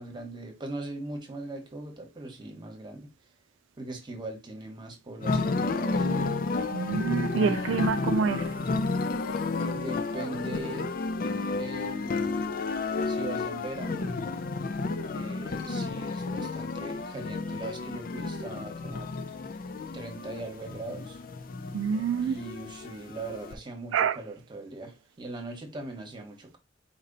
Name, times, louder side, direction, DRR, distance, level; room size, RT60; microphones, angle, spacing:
voice 1, 0.0-3.1 3.8-6.1 9.7-11.0 11.6-12.4 13.1-14.1 15.1-19.1 19.9-21.2 22.2-26.6, right 2 dB, 25° right, 1.1 m, -40 dB
sound 1, 5.2-23.5, left 3 dB, 50° left, 0.4 m, -32 dB
voice 2, 6.7-8.5 21.7-22.4 23.9-24.2, right 6 dB, 75° right, 0.3 m, -27 dB
Female singing, 7.4-13.7 14.4-14.5, left 3 dB, 85° left, 0.7 m, -44 dB
4.2 x 2.7 x 3.9 m
head